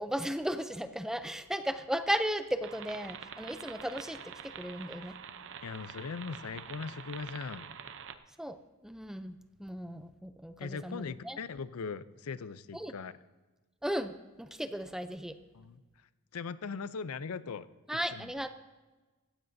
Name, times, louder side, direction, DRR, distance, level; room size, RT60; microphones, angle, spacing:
voice 1, 0.0-5.2 8.4-11.4 12.7-12.9 13.8-15.4 17.9-18.5, equal, ahead, 10 dB, 0.5 m, -36 dB
sound 1, 2.6-8.2, right 7 dB, 60° right, 0.7 m, -46 dB
voice 2, 5.6-7.7 10.6-13.1 15.5-15.8 16.3-17.7 18.1-18.3, left 5 dB, 80° left, 15 dB, 0.5 m, -40 dB
16.5 x 15.0 x 2.7 m, 1.2 s
head